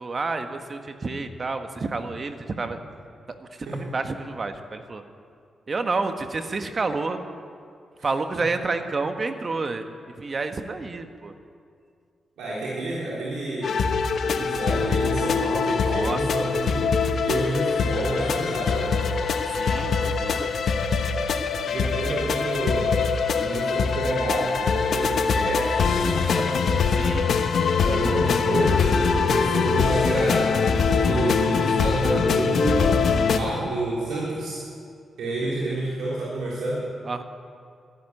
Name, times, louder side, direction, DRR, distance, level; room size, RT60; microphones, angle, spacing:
voice 1, 0.0-2.8 3.3-5.0 5.7-7.2 8.0-9.9 10.2-11.3 15.8-16.5 19.5-20.5 26.9-27.4 37.0-37.2, right 3 dB, 45° right, 7 dB, 1.4 m, -30 dB
voice 2, 12.4-13.8 14.2-16.9 17.2-19.1 19.7-19.9 21.6-23.0 23.3-26.5 27.8-30.5 30.9-34.6 35.2-36.8, right 2 dB, 80° right, -7 dB, 3.5 m, -29 dB
sound 1, 13.6-33.4, left 5 dB, 70° left, 1.1 m, -23 dB
12.5 x 12.0 x 9.1 m, 2.3 s
supercardioid pair, 50°, 0 cm